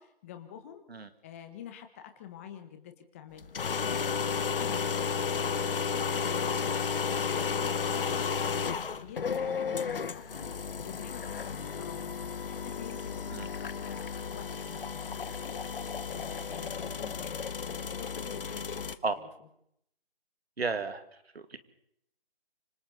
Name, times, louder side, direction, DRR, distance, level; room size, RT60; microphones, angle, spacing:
voice 1, 0.0-0.8 1.2-12.1 12.4-19.5, left 9 dB, 15° left, 7 dB, 1.3 m, -47 dB
sound 1, 3.4-19.0, left 6 dB, 65° left, 1.1 m, -33 dB
voice 2, 20.6-21.0 21.3-21.6, right 4 dB, 85° right, 9 dB, 2.6 m, -32 dB
27.0 x 25.5 x 4.2 m, 0.72 s
hypercardioid pair, 165°, 30 cm